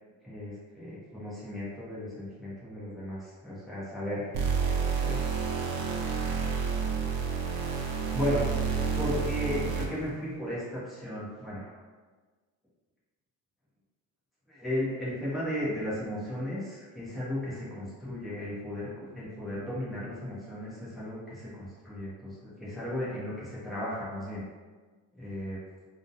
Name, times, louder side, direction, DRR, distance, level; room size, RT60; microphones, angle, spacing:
voice 1, 0.2-4.3 4.9-5.2 8.1-8.4 9.0-11.8 14.5-24.4 25.1-25.6, left 1 dB, ahead, -9 dB, 0.7 m, -35 dB
sound 1, 4.3-10.1, right 5 dB, 85° right, 0.5 m, -29 dB
2.4 x 2.1 x 2.7 m, 1.4 s
cardioid pair, 155°, 34 cm